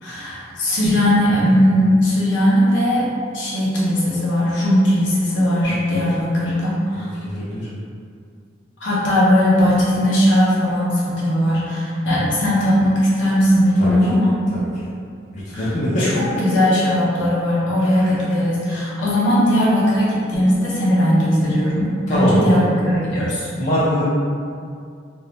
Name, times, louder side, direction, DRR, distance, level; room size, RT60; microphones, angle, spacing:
voice 1, 0.0-3.0 3.3-7.1 8.8-14.4 15.5-15.7 16.0-23.5, equal, 90° left, -7 dB, 0.8 m, -18 dB
voice 2, 6.9-7.7 13.8-13.9 14.5-14.7 15.3-16.6 17.8-18.2 22.1-22.6 23.6-24.0, equal, 40° left, -9 dB, 0.5 m, -23 dB
2.5 x 2.0 x 3.0 m, 2.3 s
head